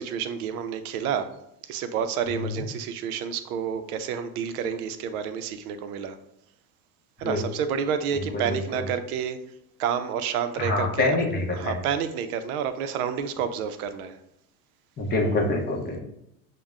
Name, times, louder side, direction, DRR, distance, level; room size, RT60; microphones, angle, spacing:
voice 1, 0.0-1.3 1.7-6.2 7.2-9.4 9.8-11.2 11.5-14.2, right 7 dB, 80° right, 10 dB, 0.5 m, -29 dB
voice 2, 2.3-2.6 7.2-7.4 8.1-8.8 10.6-11.8 15.0-16.0, left 2 dB, 20° left, -1 dB, 0.7 m, -26 dB
6.3 x 2.2 x 2.4 m, 0.80 s
supercardioid pair, 130°, 43 cm